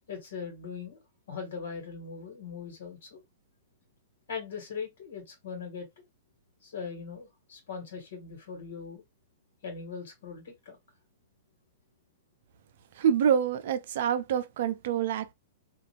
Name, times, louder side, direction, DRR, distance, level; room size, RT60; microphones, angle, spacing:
voice 1, 0.1-1.0 1.3-3.2 4.3-5.9 6.6-9.0 9.6-10.8, left 5 dB, 65° left, 1.6 m, -40 dB
voice 2, 13.0-15.3, right 8 dB, 60° right, 0.4 m, -26 dB
2.5 x 2.4 x 3.0 m
hypercardioid pair, 110°, 0 cm